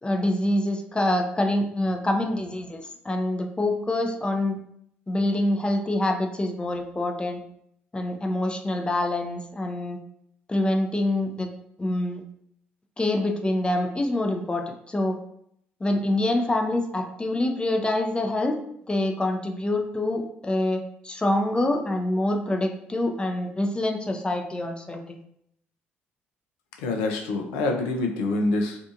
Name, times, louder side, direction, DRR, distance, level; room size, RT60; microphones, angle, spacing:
voice 1, 0.0-4.5 5.1-7.4 7.9-10.0 10.5-11.5 11.8-12.2 13.0-15.2 15.8-18.6 18.9-25.2, left 1 dB, 15° left, 4 dB, 0.5 m, -26 dB
voice 2, 26.8-28.8, left 2 dB, 80° left, 3 dB, 0.4 m, -26 dB
2.6 x 2.4 x 2.5 m, 0.72 s
hypercardioid pair, 50°, 6 cm